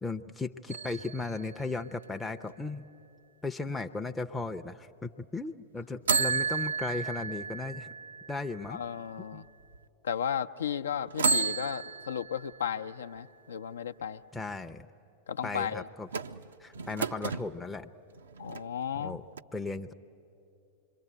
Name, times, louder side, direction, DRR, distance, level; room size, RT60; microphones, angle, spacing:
voice 1, 0.0-2.9 3.4-7.9 8.3-8.8 9.3-9.4 14.3-14.9 15.4-16.1 16.6-17.9 19.0-19.2 19.5-19.9, left 3 dB, 10° left, 5 dB, 0.6 m, -36 dB
sound 1, 0.7-2.5 6.1-9.2 9.7-9.8 11.1-12.9 16.1-17.5 18.2-19.1 19.4-19.5, right 5 dB, 70° right, 0.5 m, -33 dB
voice 2, 8.7-9.5 10.0-14.2 15.3-15.9 18.4-19.2, left 8 dB, 70° left, 9 dB, 0.6 m, -34 dB
26.5 x 22.5 x 9.1 m, 2.8 s
figure-of-eight pair, 90°, 0 cm